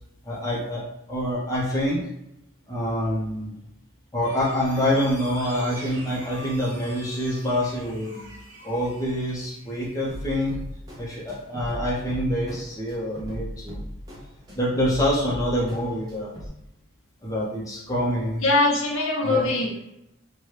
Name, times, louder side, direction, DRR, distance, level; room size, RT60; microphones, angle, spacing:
voice 1, 0.2-2.0 2.7-3.5 4.1-8.1 8.6-10.6 11.0-13.8 14.5-16.3 17.2-18.4 19.2-19.5, equal, 15° left, -5 dB, 0.6 m, -26 dB
sound 1, 4.2-10.4, right 1 dB, 55° right, 0.9 m, -44 dB
sound 2, 10.1-16.5, equal, 20° right, 0.7 m, -38 dB
voice 2, 18.4-19.8, left 2 dB, 75° left, -1 dB, 0.7 m, -22 dB
2.8 x 2.2 x 3.2 m, 0.83 s
head